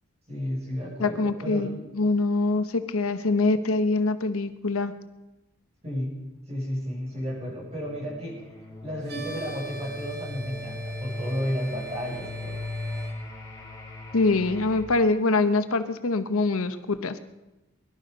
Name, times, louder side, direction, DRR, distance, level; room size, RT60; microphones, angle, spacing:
voice 1, 0.3-1.7 5.8-6.1 6.5-12.6, equal, 30° right, -4 dB, 6.5 m, -32 dB
voice 2, 1.0-4.9 14.1-17.2, left 3 dB, 85° left, 11 dB, 0.9 m, -24 dB
sound 1, 7.2-14.8, left 3 dB, 15° left, 3.5 m, -39 dB
sound 2, 9.0-13.1, right 5 dB, 50° right, 2.2 m, -41 dB
22.0 x 12.0 x 5.3 m, 1.0 s
head